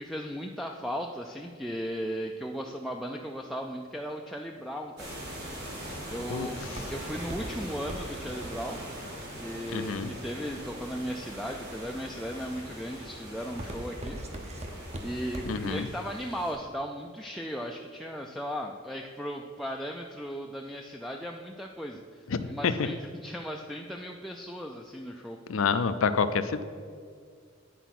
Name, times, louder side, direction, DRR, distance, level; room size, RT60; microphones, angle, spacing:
voice 1, 0.0-5.1 6.1-8.8 9.4-14.2 15.0-25.4, equal, ahead, 0 dB, 0.3 m, -37 dB
sound 1, 5.0-16.5, right 1 dB, 55° right, 2.5 m, -41 dB
Walk footsteps, 6.6-10.6 11.2-11.7 12.2-12.5 12.9-15.8 16.1-16.2, right 1 dB, 35° right, 0.8 m, -40 dB
voice 2, 9.7-10.1 15.5-15.9 22.3-22.9 25.5-26.6, left 5 dB, 85° left, 11 dB, 0.5 m, -28 dB
10.0 x 4.6 x 5.9 m, 2.1 s
head